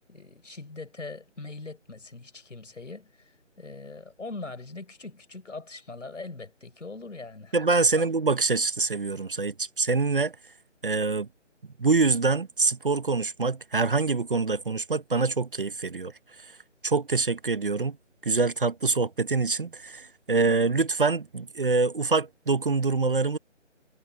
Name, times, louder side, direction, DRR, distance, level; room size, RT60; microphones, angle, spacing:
voice 1, 0.1-7.6 7.9-8.0, left 3 dB, 75° left, 5.8 m, -41 dB
voice 2, 7.5-10.4 10.8-11.3 11.8-16.1 16.8-18.0 18.2-23.4, right 4 dB, 45° right, 1.0 m, -25 dB
figure-of-eight pair, 175°, 37 cm